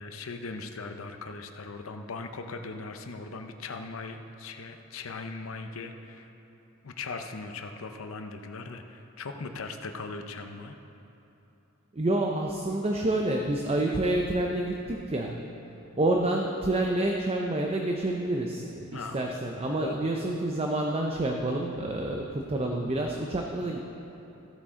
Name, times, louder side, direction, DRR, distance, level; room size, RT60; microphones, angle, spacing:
voice 1, 0.0-6.3 6.8-10.8 15.9-16.0 18.9-19.3 19.6-20.3, left 3 dB, 75° left, 6 dB, 0.7 m, -39 dB
voice 2, 11.9-15.4 16.0-23.8, right 1 dB, 30° right, 1 dB, 0.6 m, -28 dB
15.0 x 8.4 x 3.7 m, 3.0 s
head